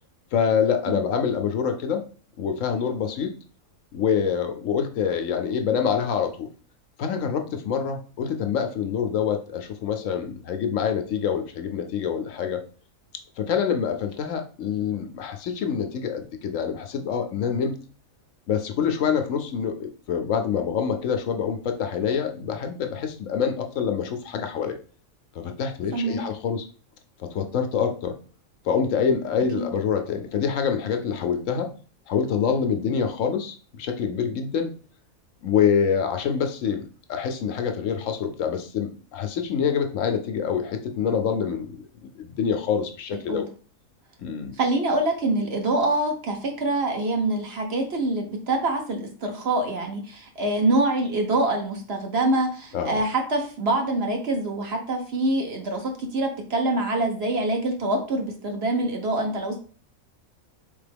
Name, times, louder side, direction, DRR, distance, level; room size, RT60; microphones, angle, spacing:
voice 1, 0.3-2.1 2.4-3.4 3.9-6.5 7.0-12.6 13.4-17.8 18.5-24.8 25.3-26.7 27.2-28.2 28.6-31.7 32.1-34.7 35.4-36.8 37.1-43.5 44.2-44.5 52.7-53.0, left 7 dB, 70° left, 6 dB, 0.9 m, -26 dB
voice 2, 44.6-59.6, right 2 dB, 55° right, 3 dB, 1.0 m, -25 dB
4.1 x 3.6 x 3.4 m, 0.41 s
omnidirectional pair, 1.5 m